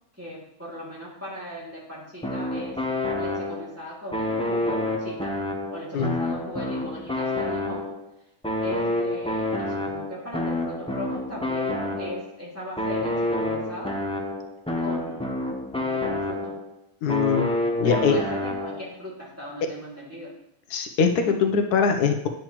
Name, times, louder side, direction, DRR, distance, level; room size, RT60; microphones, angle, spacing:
voice 1, 0.2-2.8 3.2-5.4 5.7-7.9 8.6-14.0 14.8-15.3 15.7-16.5 17.8-20.4, equal, 10° right, -7 dB, 2.3 m, -38 dB
sound 1, 2.2-3.8 4.1-8.1 8.4-12.3 12.8-16.7 17.1-18.9, left 2 dB, 5° left, 0.5 m, -28 dB
voice 2, 17.0-18.2 20.7-22.3, left 6 dB, 85° left, 6 dB, 1.3 m, -22 dB
9.1 x 6.0 x 3.0 m, 0.75 s
omnidirectional pair, 1.6 m